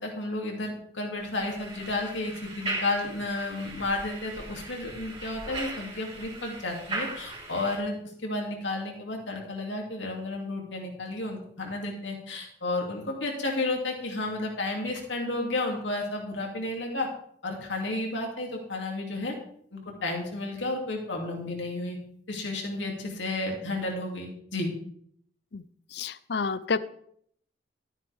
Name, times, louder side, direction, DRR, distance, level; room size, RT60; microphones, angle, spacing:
voice 1, 0.0-17.1 17.4-19.3 19.7-22.0 22.3-24.7, left 2 dB, 80° left, 1 dB, 2.8 m, -32 dB
sound 1, 1.2-7.8, right 2 dB, 30° right, 3.7 m, -38 dB
voice 2, 25.9-26.8, left 4 dB, 60° left, 16 dB, 0.6 m, -29 dB
13.5 x 9.5 x 3.6 m, 0.66 s
head